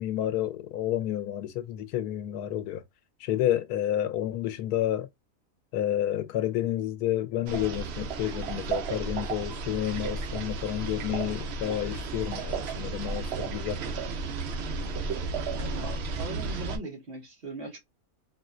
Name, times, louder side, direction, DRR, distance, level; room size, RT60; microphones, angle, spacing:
voice 1, 0.0-2.8 3.2-5.1 5.7-13.8, left 12 dB, 85° left, 1.1 m, -30 dB
sound 1, 7.5-16.8, right 4 dB, 65° right, 0.6 m, -33 dB
voice 2, 15.6-17.8, right 2 dB, 45° right, 1.2 m, -40 dB
4.2 x 2.2 x 2.4 m
omnidirectional pair, 1.6 m